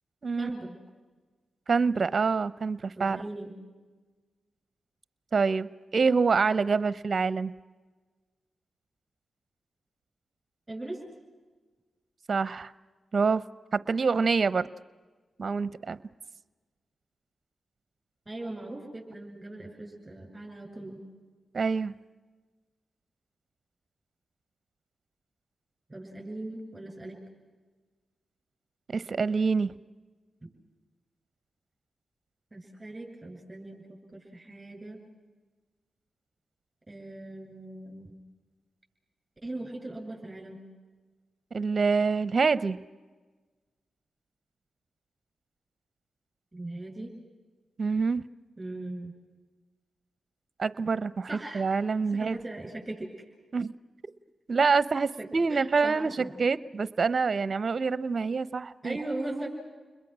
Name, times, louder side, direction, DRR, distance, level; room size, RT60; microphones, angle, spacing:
voice 1, 0.4-0.7 3.0-3.5 10.7-11.0 18.3-21.0 25.9-27.2 30.4-30.5 32.5-35.0 36.9-38.2 39.4-40.6 46.5-47.1 48.6-49.1 51.3-51.7 52.1-53.1 55.2-56.3 58.8-59.5, right 2 dB, 20° right, 2 dB, 7.9 m, -39 dB
voice 2, 1.7-3.2 5.3-7.5 12.3-12.7 13.1-13.4 13.7-14.7 15.4-16.0 21.5-21.9 28.9-29.7 41.5-42.8 47.8-48.2 50.6-51.3 51.5-52.4 53.5-53.7 54.5-56.1 56.4-59.0, right 4 dB, 55° right, 17 dB, 0.9 m, -26 dB
29.5 x 21.5 x 6.3 m, 1.3 s
supercardioid pair, 45°, 0 cm